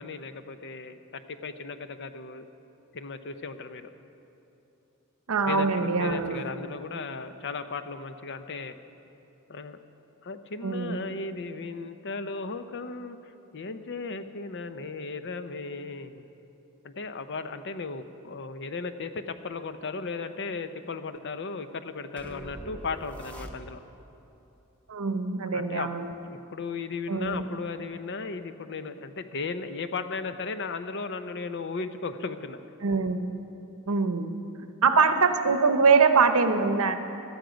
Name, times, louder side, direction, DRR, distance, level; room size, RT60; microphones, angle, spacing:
voice 1, 0.0-2.5 2.9-3.9 5.5-8.8 9.5-9.8 10.2-16.2 16.8-23.8 25.5-25.9 26.3-32.6, left 4 dB, 55° left, 10 dB, 0.7 m, -36 dB
voice 2, 5.3-6.5 10.6-11.0 24.9-26.2 27.1-27.4 32.8-33.3 33.9-34.4 34.8-37.0, right 4 dB, 85° right, 8 dB, 0.9 m, -23 dB
sound 1, 22.2-24.0, right 1 dB, 5° left, 0.9 m, -43 dB
17.0 x 13.0 x 5.1 m, 2.9 s
head